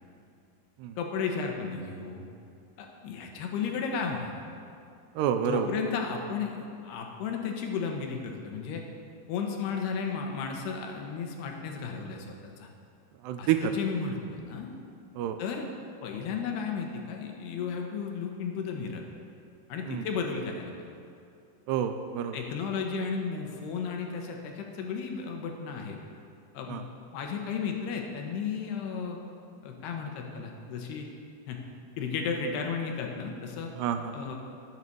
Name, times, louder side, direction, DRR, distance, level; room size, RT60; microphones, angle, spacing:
voice 1, 1.0-2.3 2.8-4.5 5.5-8.8 9.3-12.7 13.4-14.7 15.4-15.7 16.0-19.0 19.7-20.7 22.3-26.0 26.5-26.9 27.1-29.2 29.6-31.1 31.5-31.6 32.0-33.7 34.1-34.4, left 5 dB, 75° left, 2 dB, 3.0 m, -34 dB
voice 2, 5.2-5.7 13.2-13.7 15.2-15.4 19.8-20.1 21.7-22.4 26.7-26.8 33.8-34.1, right 9 dB, 85° right, 7 dB, 2.6 m, -29 dB
12.5 x 8.3 x 6.8 m, 2.5 s
omnidirectional pair, 5.0 m